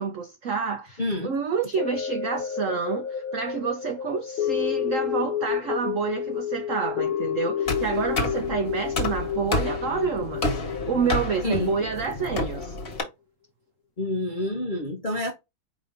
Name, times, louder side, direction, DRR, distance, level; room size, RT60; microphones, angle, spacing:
voice 1, 0.0-12.8, right 6 dB, 85° right, 0.6 m, -29 dB
voice 2, 1.0-1.3 11.4-11.7 14.0-15.3, left 1 dB, 50° left, 0.5 m, -28 dB
sound 1, 1.8-12.1 12.6-12.7, left 8 dB, 85° left, 1.4 m, -30 dB
sound 2, 7.7-13.0, left 2 dB, 30° left, 1.4 m, -30 dB
5.0 x 3.8 x 2.6 m
omnidirectional pair, 2.2 m